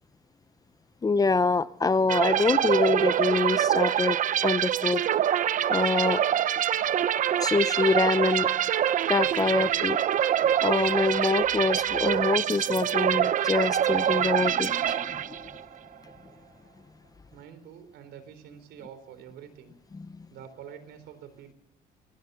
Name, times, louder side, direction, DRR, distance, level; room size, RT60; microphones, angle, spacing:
voice 1, 1.0-5.0 5.7-6.2 7.4-8.5 9.1-10.0 10.6-15.4 19.9-20.1, left 4 dB, 20° left, 15 dB, 0.7 m, -25 dB
sound 1, 2.1-15.6, right 10 dB, 50° right, 0.8 m, -25 dB
voice 2, 17.3-19.8 20.3-21.5, right 8 dB, 80° right, 12 dB, 4.0 m, -46 dB
21.5 x 20.5 x 6.9 m, 0.73 s
cardioid pair, 110°, 17 cm